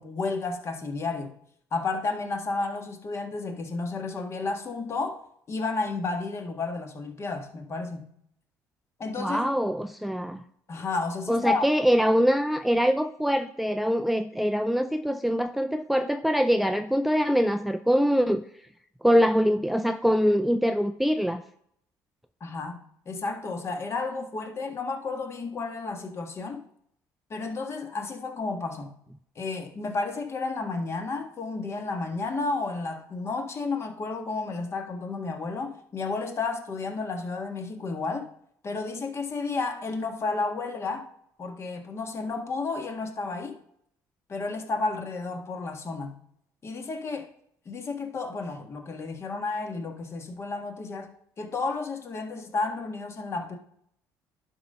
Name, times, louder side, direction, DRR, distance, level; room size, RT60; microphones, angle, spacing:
voice 1, 0.0-1.3 1.7-8.0 9.0-9.4 10.7-11.6 22.4-22.8 23.0-26.6 27.3-28.9 29.3-38.3 38.6-41.1 41.4-43.6 44.3-46.2 46.6-47.3 47.6-51.1 51.4-53.6, left 3 dB, 35° left, 1.6 m, -32 dB
voice 2, 9.2-10.4 11.3-18.4 19.0-21.4, equal, ahead, 0.4 m, -24 dB
11.0 x 4.0 x 5.5 m
cardioid pair, 105°, 7 cm